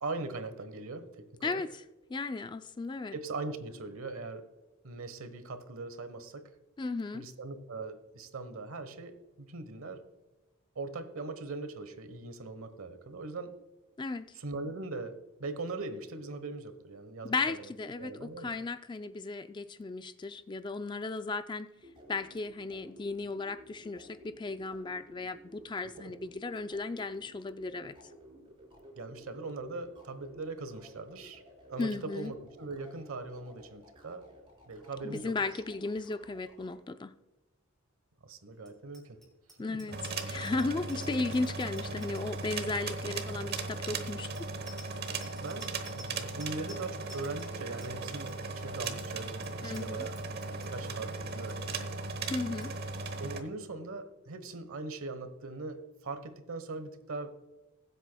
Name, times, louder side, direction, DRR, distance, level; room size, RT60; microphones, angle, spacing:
voice 1, 0.0-1.6 3.1-4.5 4.8-6.5 7.1-10.1 10.7-13.6 14.4-17.7 18.0-18.5 26.0-26.1 29.0-31.4 31.7-34.3 34.7-35.4 38.2-39.2 39.7-39.8 45.3-50.2 50.4-51.8 53.2-57.3, right 3 dB, 75° right, 10 dB, 1.1 m, -40 dB
voice 2, 1.4-1.8 2.1-3.1 6.8-7.2 14.0-14.3 17.2-21.7 22.1-28.0 31.8-32.3 35.0-37.1 39.6-44.3 49.6-50.1 52.3-52.7, left 3 dB, 20° left, 11 dB, 0.3 m, -35 dB
sound 1, 21.7-36.7, equal, 25° right, 4.0 m, -55 dB
Bicycle bell, 38.6-50.9 51.3-51.5 51.8-52.1 52.4-52.7, left 1 dB, ahead, 3.7 m, -54 dB
sound 2, 39.9-53.4, right 3 dB, 45° right, 1.0 m, -37 dB
21.5 x 8.1 x 2.3 m, 1.1 s
head